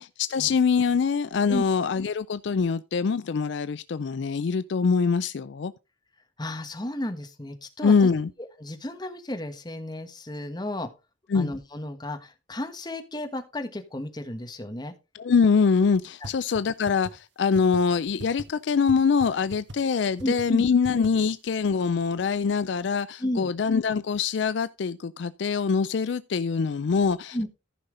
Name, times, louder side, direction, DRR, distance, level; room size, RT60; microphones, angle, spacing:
voice 1, 0.0-5.7 7.8-8.3 11.3-11.5 15.1-27.5, left 5 dB, 65° left, 0.4 m, -24 dB
voice 2, 6.4-8.1 8.6-10.9 11.3-14.9 16.2-16.3 20.2-20.6 23.2-23.5 27.3-27.5, left 1 dB, 20° left, 1.3 m, -33 dB
sound 1, 16.2-16.3 16.5-16.6 16.9-17.1 17.5-17.8 18.2-18.4 18.9-19.0 19.2-19.3 19.5-19.8 20.2-20.4 20.8-21.1, right 1 dB, 60° right, 1.3 m, -38 dB
14.5 x 5.6 x 3.8 m
head